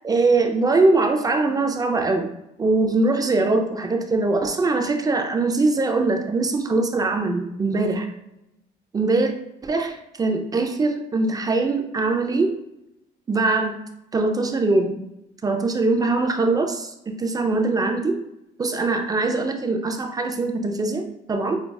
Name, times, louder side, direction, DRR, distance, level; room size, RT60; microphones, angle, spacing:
voice 1, 0.0-2.3 2.6-8.1 8.9-9.3 9.6-12.5 13.3-13.8 14.1-15.0 15.4-18.2 18.6-21.6, right 3 dB, 20° right, 5 dB, 0.4 m, -22 dB
5.3 x 2.2 x 2.2 m, 0.87 s
cardioid pair, 110°, 17 cm